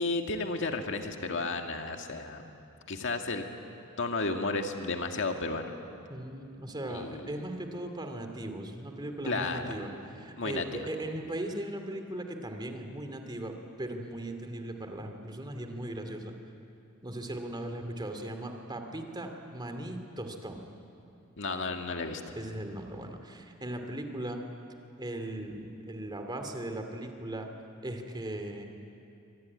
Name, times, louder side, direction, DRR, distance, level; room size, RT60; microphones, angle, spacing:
voice 1, 0.0-2.4 2.9-3.5 4.0-5.7 6.9-7.3 9.3-9.7 10.4-10.9 21.4-22.2, left 3 dB, 60° left, 4 dB, 1.9 m, -32 dB
voice 2, 6.1-16.3 17.0-20.7 22.4-24.4 25.0-27.5 27.8-28.6, right 1 dB, 20° right, 5 dB, 2.5 m, -38 dB
25.0 x 23.0 x 9.7 m, 2.6 s
head